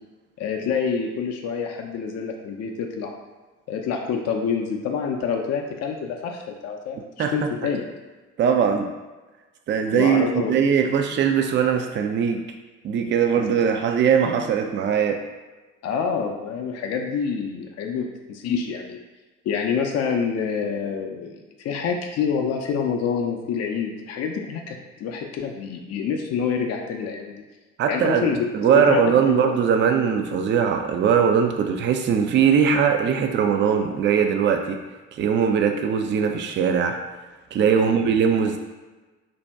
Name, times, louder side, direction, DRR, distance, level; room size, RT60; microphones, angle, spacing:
voice 1, 0.4-3.2 3.7-7.8 9.9-10.5 13.4-13.5 15.8-19.0 19.4-27.4 27.9-29.5 37.8-38.0, left 6 dB, 45° left, 2 dB, 0.5 m, -27 dB
voice 2, 8.4-8.9 9.7-12.4 12.8-15.2 27.8-34.8 35.1-37.0 37.5-38.6, right 7 dB, 35° right, 5 dB, 0.4 m, -20 dB
2.7 x 2.1 x 3.4 m, 1.2 s
hypercardioid pair, 45°, 36 cm